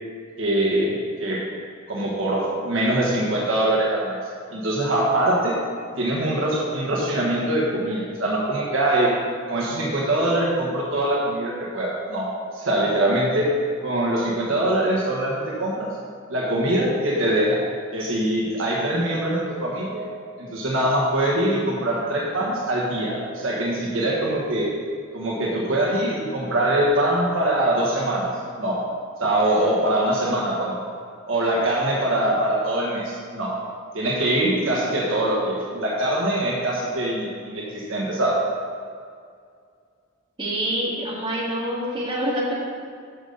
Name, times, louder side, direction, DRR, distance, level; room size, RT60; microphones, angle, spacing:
voice 1, 0.4-1.4 1.9-4.2 4.5-5.5 6.0-9.1 9.5-12.3 12.5-13.5 13.8-15.9 16.3-17.6 17.9-20.1 20.4-24.7 25.1-28.3 28.6-28.8 29.2-30.7 31.3-33.5 33.9-38.4, right 1 dB, 60° right, -4 dB, 1.5 m, -23 dB
voice 2, 40.4-42.5, equal, 20° right, -7 dB, 2.1 m, -26 dB
13.5 x 5.5 x 4.0 m, 2.2 s
head